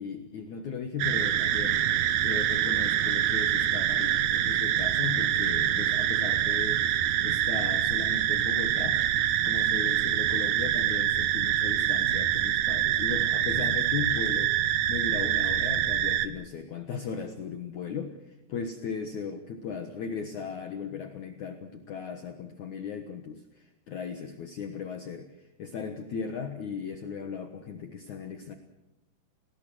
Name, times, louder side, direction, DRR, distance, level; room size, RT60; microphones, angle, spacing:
voice 1, 0.0-1.8 2.2-9.0 9.4-18.1 18.5-28.5, left 6 dB, 60° left, 6 dB, 2.3 m, -37 dB
sound 1, 1.0-16.3, right 11 dB, 70° right, 1.8 m, -25 dB
30.0 x 19.5 x 6.3 m, 0.96 s
omnidirectional pair, 4.8 m